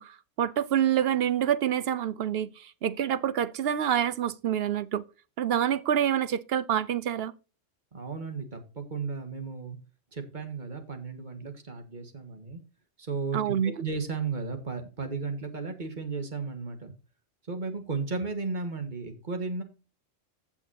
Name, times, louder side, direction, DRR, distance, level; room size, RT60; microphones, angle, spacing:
voice 1, 0.0-5.0 5.4-7.3 13.3-13.7, right 9 dB, 60° right, 0.7 m, -27 dB
voice 2, 7.9-9.8 10.1-12.6 13.0-16.9 17.5-19.6, right 4 dB, 40° right, 1.6 m, -34 dB
15.5 x 5.8 x 2.8 m
omnidirectional pair, 1.3 m